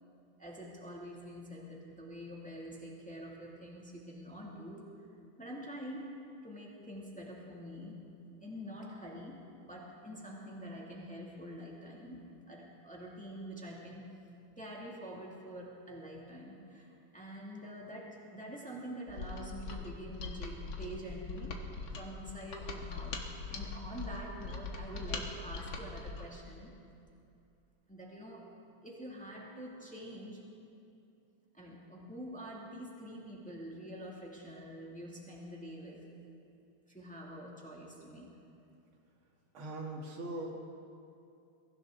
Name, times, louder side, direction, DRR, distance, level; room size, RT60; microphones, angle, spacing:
voice 1, 0.4-4.9 5.4-6.1 6.4-8.0 8.4-14.0 14.6-26.7 27.9-28.6 28.8-30.5 31.5-36.1 36.9-38.3, equal, 5° left, -3 dB, 2.1 m, -46 dB
Mechanisms, 19.1-26.3, left 4 dB, 75° left, 2.1 m, -42 dB
voice 2, 39.5-40.5, right 2 dB, 80° right, 0 dB, 2.6 m, -40 dB
23.0 x 15.5 x 3.8 m, 2.6 s
omnidirectional pair, 2.2 m